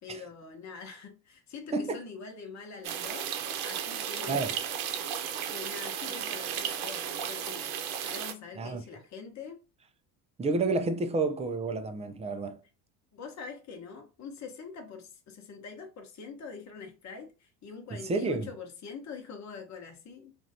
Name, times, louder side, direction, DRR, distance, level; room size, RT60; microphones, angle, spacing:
voice 1, 0.0-4.7 5.5-7.7 8.0-9.6 13.1-20.4, left 5 dB, 35° left, 1.0 m, -44 dB
sound 1, 2.8-8.3, right 8 dB, 70° right, 0.8 m, -34 dB
voice 2, 10.4-12.6 17.9-18.5, right 3 dB, 15° right, 0.4 m, -30 dB
3.0 x 2.6 x 2.7 m
hypercardioid pair, 75°, 48 cm